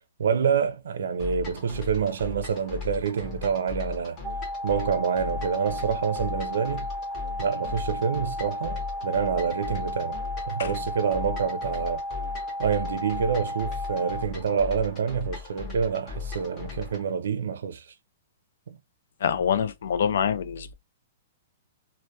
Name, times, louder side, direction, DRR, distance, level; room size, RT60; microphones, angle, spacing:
voice 1, 0.2-4.2 4.6-6.9 7.4-10.2 10.5-12.0 12.6-17.8 18.7-18.8, right 6 dB, 80° right, 0.4 m, -27 dB
sound 1, 1.2-17.1, left 5 dB, 25° left, 0.7 m, -38 dB
sound 2, 4.2-14.2, left 1 dB, 10° right, 0.4 m, -34 dB
voice 2, 19.2-20.7, left 8 dB, 70° left, 0.3 m, -25 dB
2.2 x 2.1 x 2.7 m
hypercardioid pair, 160°, 0 cm